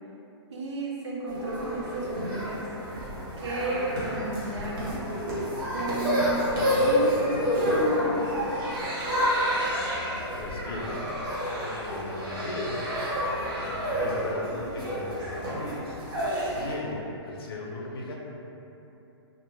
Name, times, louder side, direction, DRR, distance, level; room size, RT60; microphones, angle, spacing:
voice 1, 0.5-2.7 3.4-5.1 5.7-6.5 6.8-8.9, right 2 dB, 80° right, -4 dB, 0.6 m, -33 dB
sound 1, 1.3-16.7, equal, 50° right, 0.9 m, -29 dB
voice 2, 10.4-11.0 11.6-12.9 13.6-18.1, left 2 dB, 60° left, -2 dB, 0.5 m, -38 dB
2.5 x 2.2 x 3.0 m, 2.9 s
hypercardioid pair, 165°, 14 cm